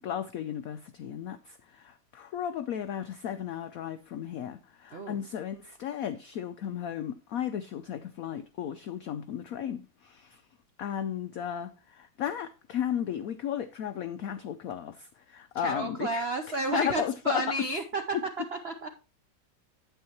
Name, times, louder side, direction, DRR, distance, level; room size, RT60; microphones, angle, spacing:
voice 1, 0.0-10.4 10.8-17.4, left 9 dB, 85° left, 0.7 m, -35 dB
voice 2, 15.6-18.0 18.5-18.9, right 2 dB, 70° right, 0.5 m, -32 dB
9.1 x 8.7 x 2.9 m
omnidirectional pair, 2.1 m